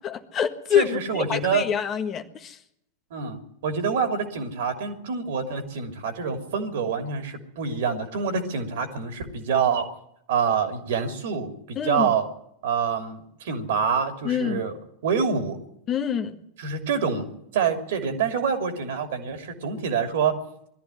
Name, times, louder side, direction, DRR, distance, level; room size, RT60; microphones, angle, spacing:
voice 1, 0.0-2.6 11.7-12.1 14.2-14.6 15.9-16.4, left 8 dB, 30° left, 7 dB, 1.5 m, -26 dB
voice 2, 0.7-1.6 3.1-9.9 10.3-12.3 12.6-14.7 15.0-15.6 16.6-20.3, right 6 dB, 55° right, 7 dB, 3.0 m, -26 dB
21.0 x 13.5 x 10.0 m, 0.76 s
figure-of-eight pair, 90°, 0 cm